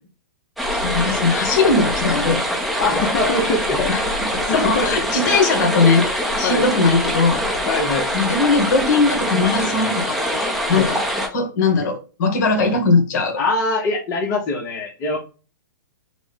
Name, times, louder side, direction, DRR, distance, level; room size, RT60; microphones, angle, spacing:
sound 1, 0.6-11.3, equal, ahead, 0.8 m, -23 dB
voice 1, 0.7-2.4 3.9-4.0 4.5-6.1 6.4-7.7 8.1-11.0 11.3-13.4, left 4 dB, 55° left, 1.5 m, -19 dB
voice 2, 2.8-3.9 4.3-5.0 6.4-6.6 7.7-8.1 10.7-10.9 13.4-15.2, left 2 dB, 30° left, 1.0 m, -23 dB
6.0 x 2.3 x 3.5 m
hypercardioid pair, 135°, 11 cm